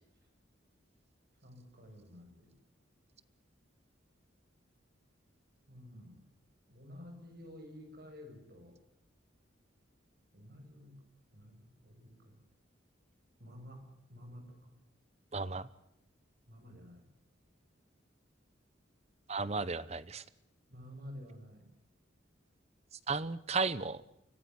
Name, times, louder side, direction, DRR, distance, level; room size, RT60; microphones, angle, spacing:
voice 1, 1.4-2.5 5.7-6.2 6.7-8.8 10.3-11.0 11.3-12.4 13.4-14.8 16.5-17.0 20.7-21.7, left 1 dB, 50° right, 4 dB, 7.6 m, -51 dB
voice 2, 15.3-15.7 19.3-20.2 23.1-24.0, right 4 dB, 35° right, 17 dB, 0.8 m, -34 dB
24.5 x 17.0 x 9.7 m, 0.80 s
head